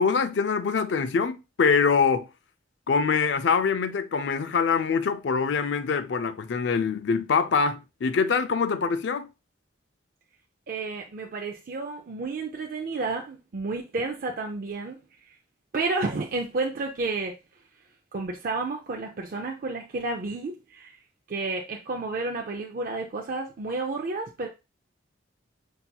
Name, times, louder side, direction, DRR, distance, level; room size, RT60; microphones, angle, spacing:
voice 1, 0.0-2.3 2.9-9.3, left 5 dB, 60° left, 0.4 m, -24 dB
voice 2, 10.7-15.0 15.7-17.4 18.1-21.0 21.3-24.5, right 3 dB, 45° right, 0.4 m, -31 dB
5.6 x 2.7 x 2.2 m
head